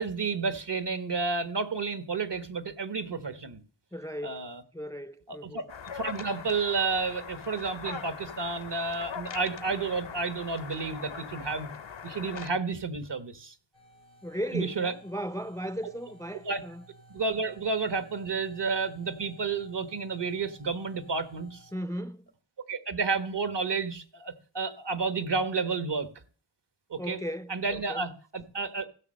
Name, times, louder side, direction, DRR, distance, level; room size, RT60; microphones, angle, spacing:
voice 1, 0.0-3.6 4.2-4.6 5.3-5.6 5.9-11.7 12.0-13.5 14.5-14.9 15.8-15.9 16.5-16.6 17.1-21.6 22.7-26.1 26.9-27.2 27.5-28.9, right 4 dB, 65° right, 1.2 m, -31 dB
voice 2, 3.9-4.4 4.7-5.6 14.2-16.9 21.7-22.3 27.0-28.1, equal, 5° left, 0.4 m, -36 dB
sound 1, 5.7-12.5, left 6 dB, 75° left, 0.8 m, -41 dB
sound 2, 13.7-21.7, right 1 dB, 80° right, 4.2 m, -56 dB
15.5 x 6.3 x 6.4 m
wide cardioid pair, 60°, 46 cm